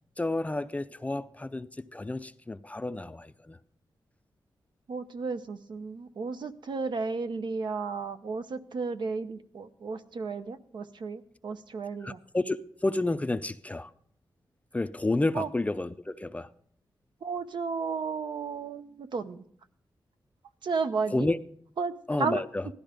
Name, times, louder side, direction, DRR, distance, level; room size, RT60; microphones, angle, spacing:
voice 1, 0.2-3.6 12.0-13.9 14.7-16.5 21.1-21.4 22.1-22.7, left 2 dB, 15° left, 0.5 m, -30 dB
voice 2, 4.9-12.2 15.3-15.5 17.2-19.4 20.6-21.3 21.8-21.9 22.2-22.4, right 4 dB, 65° right, 0.9 m, -33 dB
16.0 x 12.5 x 5.1 m
wide cardioid pair, 115°, 8 cm